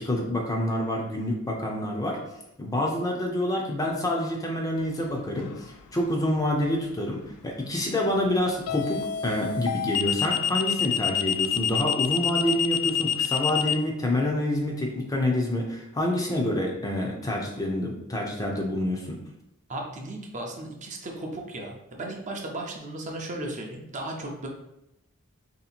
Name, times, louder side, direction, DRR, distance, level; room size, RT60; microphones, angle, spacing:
voice 1, 0.0-2.2 2.6-19.2, left 1 dB, 15° left, 0 dB, 0.5 m, -27 dB
sound 1, 5.4-5.7 8.7-13.7, left 8 dB, 90° left, 0.3 m, -26 dB
voice 2, 19.7-24.5, right 1 dB, 35° right, 1 dB, 0.6 m, -35 dB
3.2 x 2.8 x 4.2 m, 0.85 s
head